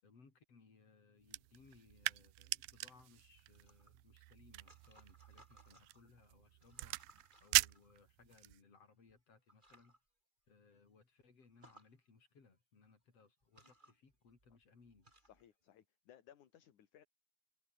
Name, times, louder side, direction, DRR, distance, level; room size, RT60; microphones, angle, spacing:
voice 1, 0.0-7.0 7.4-10.0 10.5-15.1, left 4 dB, 40° left, 5.6 m, -66 dB
sound 1, 1.2-8.6, right 22 dB, 85° right, 1.9 m, -41 dB
sound 2, 3.5-6.1 6.5-8.4 9.1-9.2 9.5-10.0 10.5-10.6 10.9-11.0 11.4-11.9 12.9-13.0 13.4-15.5, right 1 dB, 10° right, 5.8 m, -66 dB
voice 2, 15.2-17.1, left 10 dB, 60° left, 3.1 m, -63 dB
omnidirectional pair, 4.4 m